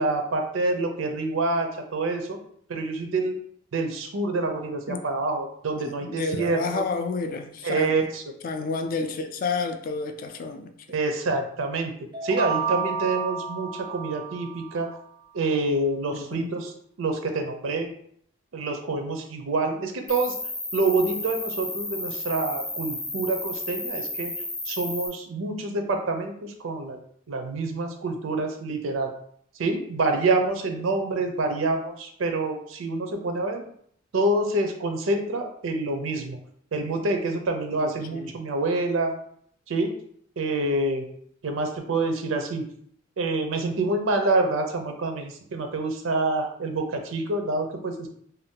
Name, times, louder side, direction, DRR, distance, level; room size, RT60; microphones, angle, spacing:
voice 1, 0.0-2.4 2.7-3.3 3.7-6.8 7.6-8.2 10.9-11.9 12.2-14.9 15.3-16.7 17.0-17.9 18.5-20.3 20.7-24.3 24.7-27.0 27.3-29.1 29.6-33.6 34.1-36.4 36.7-39.1 39.7-39.9 40.4-41.0 41.4-42.6 43.2-48.1, right 2 dB, 80° right, 5 dB, 0.5 m, -27 dB
voice 2, 5.8-8.0 8.4-10.7 16.1-16.5 38.1-38.3, left 4 dB, 45° left, 6 dB, 0.3 m, -30 dB
sound 1, 12.1-14.9, right 5 dB, 25° right, 0.4 m, -31 dB
Cricket, 20.1-25.1, left 2 dB, 15° left, 0.7 m, -33 dB
2.6 x 2.2 x 3.6 m, 0.64 s
head